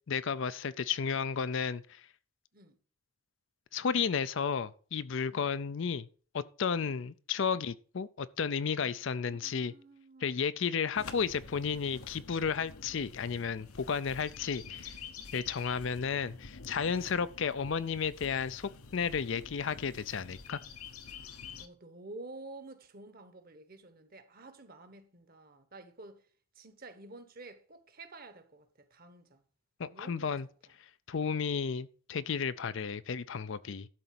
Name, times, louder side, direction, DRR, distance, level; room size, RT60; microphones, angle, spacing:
voice 1, 0.1-2.1 3.7-6.1 6.3-9.7 10.2-15.0 15.3-20.6 29.8-30.5 31.1-33.9, left 6 dB, 55° left, 0.5 m, -33 dB
voice 2, 8.8-10.5 16.8-17.1 21.1-26.3 26.5-29.4 29.9-30.7, right 2 dB, 40° right, 1.2 m, -51 dB
sound 1, 10.9-21.7, left 5 dB, 80° left, 1.0 m, -48 dB
12.0 x 4.0 x 7.6 m
head